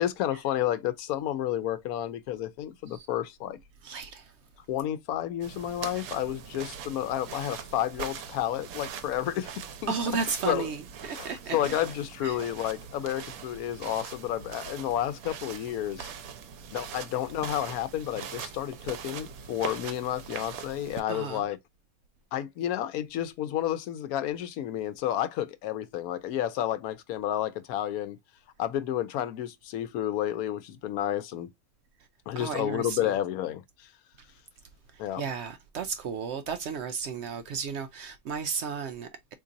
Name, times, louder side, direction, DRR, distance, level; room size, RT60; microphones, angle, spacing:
voice 1, 0.0-3.6 4.7-10.0 10.4-10.7 11.0-16.1 16.7-21.6 22.3-28.2 28.6-31.5 32.3-33.6 35.0-35.2, left 11 dB, 90° left, 1.1 m, -31 dB
voice 2, 3.8-4.3 9.9-11.6 12.2-12.4 21.1-21.4 32.4-33.1 35.2-39.3, right 6 dB, 65° right, 0.7 m, -33 dB
sound 1, 5.4-21.0, right 7 dB, 90° right, 1.1 m, -42 dB
3.9 x 2.9 x 2.5 m
omnidirectional pair, 1.5 m